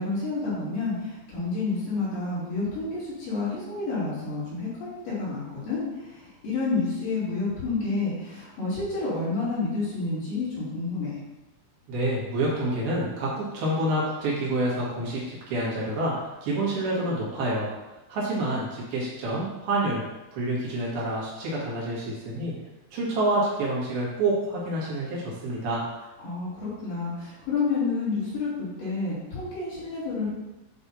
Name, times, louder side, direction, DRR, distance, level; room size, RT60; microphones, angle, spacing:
voice 1, 0.0-11.3 26.2-30.3, left 3 dB, 50° left, -9 dB, 3.5 m, -29 dB
voice 2, 11.9-20.0 20.3-22.5 22.9-25.8, right 1 dB, 60° right, -6 dB, 2.9 m, -28 dB
8.9 x 3.4 x 4.1 m, 1.0 s
omnidirectional pair, 6.0 m